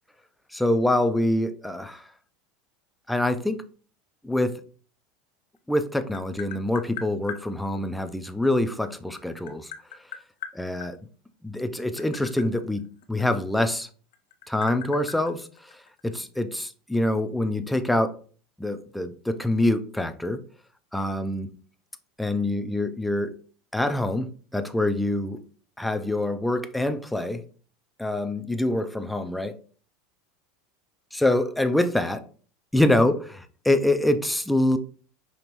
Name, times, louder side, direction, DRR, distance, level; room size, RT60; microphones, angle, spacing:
voice 1, 0.5-2.0 3.1-3.6 4.2-4.6 5.7-9.7 10.5-11.0 11.4-13.9 14.5-15.5 16.0-18.1 18.6-20.4 20.9-21.5 22.2-23.4 23.7-25.4 25.8-27.4 28.0-29.5 31.1-32.2 32.7-34.8, left 1 dB, 5° left, 0.4 m, -25 dB
Tap, 5.6-7.4 8.8-10.9 11.7-13.8 14.1-16.1, left 9 dB, 80° left, 0.6 m, -39 dB
5.1 x 3.0 x 2.9 m
supercardioid pair, 150°, 0 cm